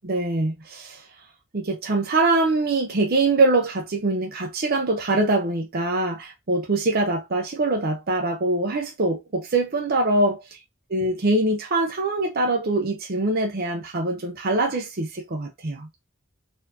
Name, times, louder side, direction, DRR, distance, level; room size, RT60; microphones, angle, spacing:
voice 1, 0.0-1.0 1.5-10.4 10.9-15.9, right 2 dB, 50° right, 0.7 m, -23 dB
4.2 x 2.8 x 2.7 m
head